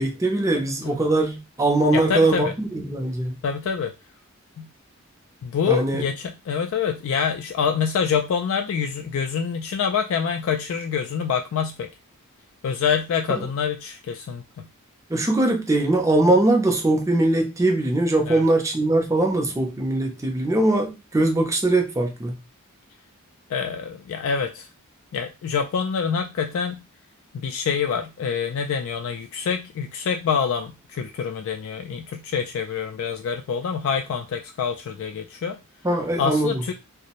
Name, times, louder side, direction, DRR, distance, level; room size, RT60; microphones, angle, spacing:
voice 1, 0.0-3.4 5.7-6.0 15.1-22.4 35.8-36.5, right 2 dB, 15° right, 0.5 m, -21 dB
voice 2, 0.5-1.0 1.9-2.5 3.4-3.9 4.6-4.7 5.4-11.9 12.6-14.7 18.3-18.4 23.5-24.7 25.1-26.9 27.3-35.6 36.2-36.7, left 6 dB, 65° left, 0.3 m, -26 dB
2.5 x 2.0 x 2.9 m
head